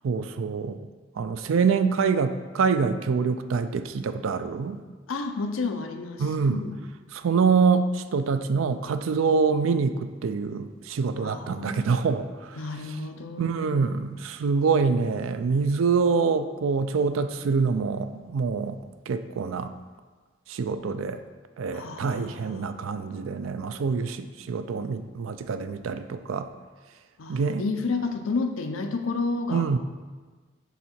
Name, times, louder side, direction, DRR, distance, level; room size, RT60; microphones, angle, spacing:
voice 1, 0.0-0.8 1.2-4.8 6.2-6.6 7.1-12.6 13.4-18.8 19.1-19.7 20.5-21.2 21.6-26.5 27.3-27.6 29.5-29.8, right 5 dB, 80° right, 10 dB, 0.4 m, -25 dB
voice 2, 5.1-6.8 11.2-11.9 12.6-14.0 21.7-22.7 27.2-29.8, left 3 dB, 85° left, 6 dB, 0.6 m, -31 dB
7.2 x 3.7 x 4.3 m, 1.4 s
head